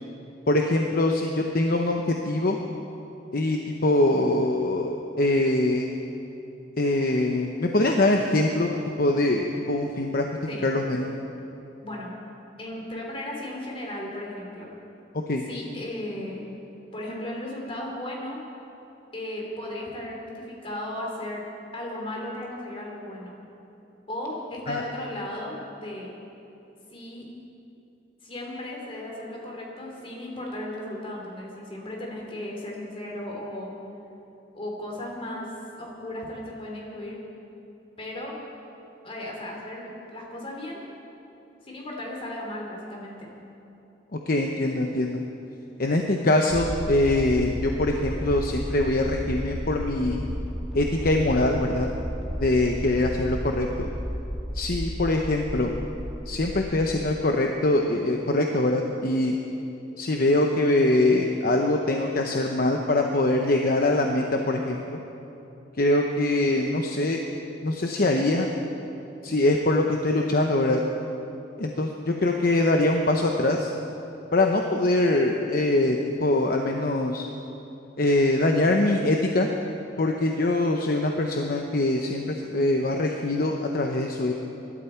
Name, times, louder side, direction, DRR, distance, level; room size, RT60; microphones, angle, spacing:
voice 1, 0.5-2.6 3.3-5.9 6.8-10.3 10.6-11.1 15.1-15.4 24.7-24.8 44.3-45.2 45.8-50.2 50.7-51.9 52.4-53.9 54.5-55.7 56.3-59.4 60.0-65.0 65.8-67.2 67.6-68.5 69.2-70.8 71.6-73.7 74.3-77.2 78.0-79.5 80.0-84.3, left 2 dB, 50° left, 2 dB, 0.8 m, -23 dB
voice 2, 12.6-14.7 15.5-16.4 16.9-18.4 19.1-21.4 21.7-23.4 24.1-26.1 26.9-27.2 28.2-33.7 34.5-37.2 38.0-38.4 39.0-40.8 41.6-43.3, left 1 dB, 30° left, -1 dB, 3.1 m, -35 dB
sound 1, 46.5-57.1, equal, ahead, 1.7 m, -33 dB
23.5 x 12.5 x 4.5 m, 2.9 s
head